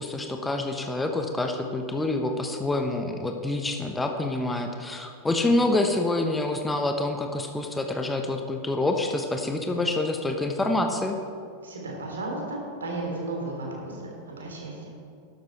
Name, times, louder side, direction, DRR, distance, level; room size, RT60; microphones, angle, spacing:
voice 1, 0.0-11.2, left 2 dB, 10° left, 4 dB, 1.0 m, -27 dB
voice 2, 11.6-14.9, right 2 dB, 70° right, -1 dB, 3.5 m, -34 dB
12.5 x 11.5 x 4.5 m, 2.3 s
figure-of-eight pair, 90°, 0 cm